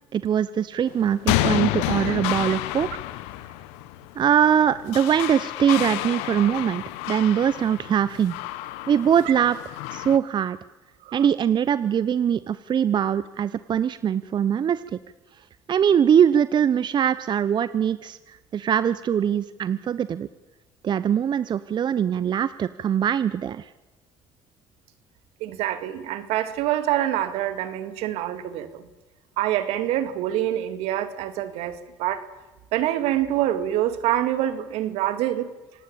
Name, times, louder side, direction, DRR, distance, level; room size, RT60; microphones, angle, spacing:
voice 1, 0.1-2.9 4.2-8.3 8.9-10.6 11.1-14.8 15.7-20.3 20.8-23.7, right 8 dB, 45° right, 15 dB, 0.8 m, -22 dB
sound 1, 0.9-10.2, left 16 dB, 85° left, 1.0 m, -29 dB
voice 2, 25.4-28.8 29.4-31.7 32.0-32.2 32.7-35.5, right 12 dB, 80° right, 12 dB, 2.1 m, -26 dB
26.5 x 18.0 x 8.7 m, 1.1 s
supercardioid pair, 75°, 10 cm